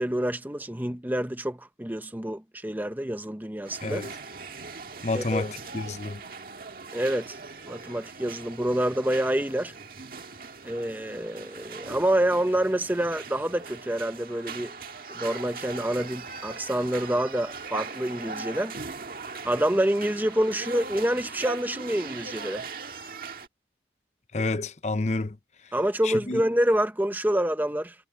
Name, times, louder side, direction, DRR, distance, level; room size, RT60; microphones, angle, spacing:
voice 1, 0.0-4.0 5.1-5.4 6.9-7.4 7.6-9.7 10.6-14.7 15.1-18.8 19.4-22.7 25.7-27.9, right 1 dB, 10° right, 0.8 m, -27 dB
sound 1, 3.6-23.5, right 4 dB, 55° right, 1.8 m, -40 dB
voice 2, 3.8-4.1 5.0-6.2 24.3-25.4 26.0-26.4, left 2 dB, 40° left, 0.8 m, -29 dB
head